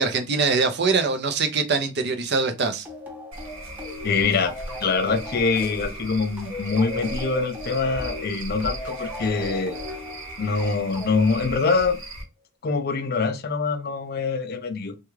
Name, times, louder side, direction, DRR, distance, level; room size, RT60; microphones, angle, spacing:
voice 1, 0.0-2.9, right 4 dB, 55° right, 0.6 m, -23 dB
sound 1, 2.8-12.1, left 2 dB, 10° right, 0.7 m, -37 dB
Cricket / Frog, 3.3-12.2, right 1 dB, 70° right, 1.1 m, -38 dB
voice 2, 4.0-4.5 4.8-9.8 10.4-12.0 12.6-15.0, left 4 dB, 50° left, 0.4 m, -24 dB
3.4 x 2.3 x 3.0 m
head